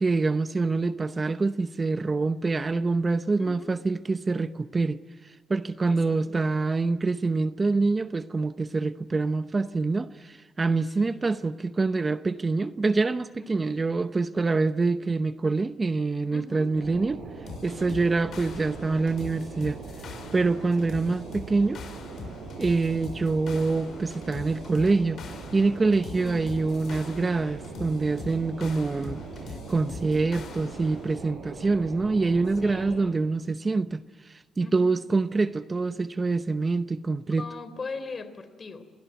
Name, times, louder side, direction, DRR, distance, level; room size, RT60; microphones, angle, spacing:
voice 1, 0.0-17.2 17.6-19.8 20.3-21.8 22.6-25.2 25.5-29.2 29.7-37.4, right 3 dB, 25° right, 0.8 m, -26 dB
voice 2, 3.4-3.7 5.9-6.0 6.3-6.4 11.0-11.2 13.4-13.8 16.3-16.7 17.8-18.1 20.8-21.0 26.2-26.6 32.6-33.2 34.6-35.0 37.4-38.8, left 4 dB, 35° left, 3.4 m, -40 dB
sound 1, 16.7-33.0, right 4 dB, 75° right, 7.6 m, -41 dB
sound 2, 17.5-31.0, left 4 dB, 60° left, 6.4 m, -43 dB
27.5 x 19.5 x 9.3 m
cardioid pair, 90°, 0 cm